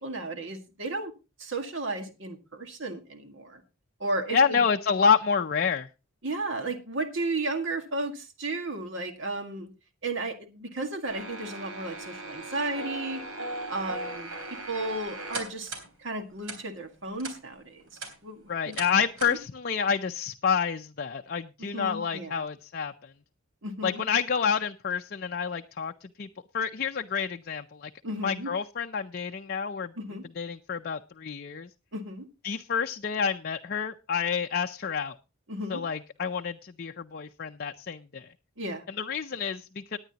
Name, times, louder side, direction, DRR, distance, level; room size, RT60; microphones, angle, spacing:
voice 1, 0.0-1.1 1.4-3.6 4.0-4.6 6.2-9.7 10.0-13.2 13.7-14.3 14.7-15.7 16.0-17.8 18.2-18.8 21.7-22.4 23.6-24.0 28.0-28.5 30.0-30.2 31.9-32.3 35.5-35.8 38.6-38.8, right 2 dB, 55° right, 6 dB, 1.8 m, -34 dB
voice 2, 4.3-5.9 18.5-22.9 23.8-26.3 26.5-27.9 28.2-29.9 30.4-31.7 32.4-35.1 35.7-38.3 38.9-40.0, left 6 dB, 45° left, 5 dB, 0.5 m, -28 dB
sound 1, 11.0-15.9 16.4-16.6 17.2-17.4 17.8-18.1 18.7-18.9 19.2-19.4, right 2 dB, 80° right, 3.5 m, -38 dB
18.5 x 9.8 x 2.9 m, 0.28 s
head